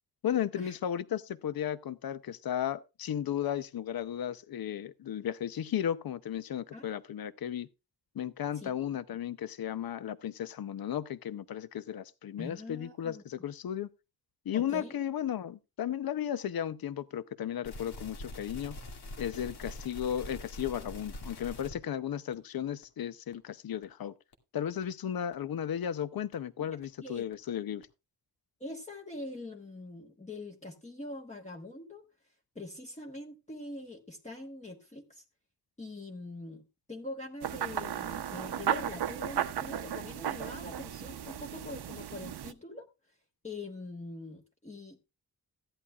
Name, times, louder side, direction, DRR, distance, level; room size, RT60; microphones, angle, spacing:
voice 1, 0.2-7.7 8.2-13.9 14.5-18.8 19.2-24.1 24.5-27.9, left 10 dB, 65° left, 0.7 m, -35 dB
voice 2, 8.5-8.9 12.4-13.2 14.5-15.0 26.6-27.2 28.6-32.0 32.5-35.2 35.8-42.9 43.4-45.0, left 2 dB, 20° left, 1.3 m, -43 dB
sound 1, 17.6-21.8 22.3-22.4 22.8-22.9 23.3-23.4 23.8-23.9 24.3-24.4 24.8-24.9 25.3-25.4 25.8-25.9 26.3-26.4 26.8-26.9 27.3-27.4 27.8-27.9, left 1 dB, 80° left, 2.3 m, -44 dB
sound 2, 37.4-42.5, right 10 dB, 85° right, 0.8 m, -35 dB
15.5 x 11.0 x 2.3 m
wide cardioid pair, 155°, 38 cm